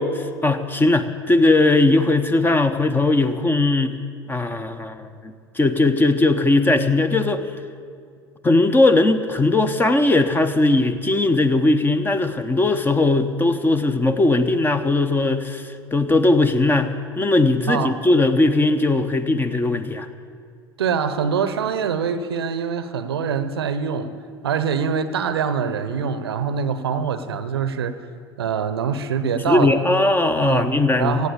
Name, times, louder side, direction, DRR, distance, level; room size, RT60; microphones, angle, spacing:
voice 1, 0.0-3.9 4.3-7.4 8.4-20.1 29.5-31.2, left 2 dB, 15° left, 10 dB, 0.9 m, -19 dB
voice 2, 17.7-18.0 20.8-24.1 24.4-28.0 28.4-29.7 30.4-30.7 31.0-31.3, right 6 dB, 75° right, 12 dB, 0.8 m, -24 dB
16.5 x 7.9 x 8.3 m, 2.1 s
figure-of-eight pair, 75°, 13 cm